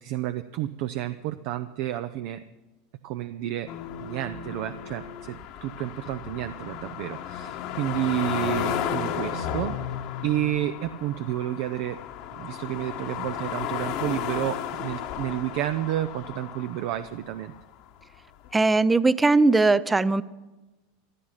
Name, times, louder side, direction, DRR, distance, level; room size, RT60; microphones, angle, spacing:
voice 1, 0.0-2.4 3.0-3.7 4.0-9.8 10.2-12.0 12.3-17.5, right 13 dB, 60° right, 11 dB, 0.6 m, -30 dB
sound 1, 3.7-17.7 18.4-18.5, left 9 dB, 60° left, 1.3 m, -34 dB
voice 2, 18.5-20.2, right 3 dB, 15° right, 17 dB, 0.6 m, -19 dB
15.0 x 11.5 x 5.8 m, 1.1 s
hypercardioid pair, 90°, 0 cm